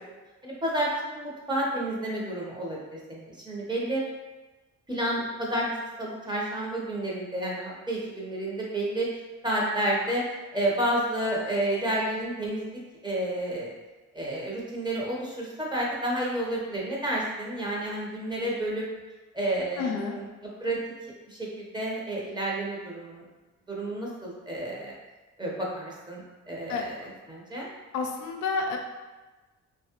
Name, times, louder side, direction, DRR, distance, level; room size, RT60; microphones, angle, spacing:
voice 1, 0.4-4.0 4.9-5.7 6.0-9.1 9.4-10.2 10.5-13.7 14.1-18.9 19.3-20.3 20.6-20.8 21.3-23.2 23.7-24.9 25.4-26.2 26.5-27.7, right 1 dB, 15° right, -4 dB, 0.8 m, -30 dB
voice 2, 19.8-20.2 26.7-26.8 27.9-28.8, left 4 dB, 85° left, 2 dB, 0.5 m, -29 dB
3.0 x 2.3 x 2.9 m, 1.2 s
cardioid pair, 90°, 30 cm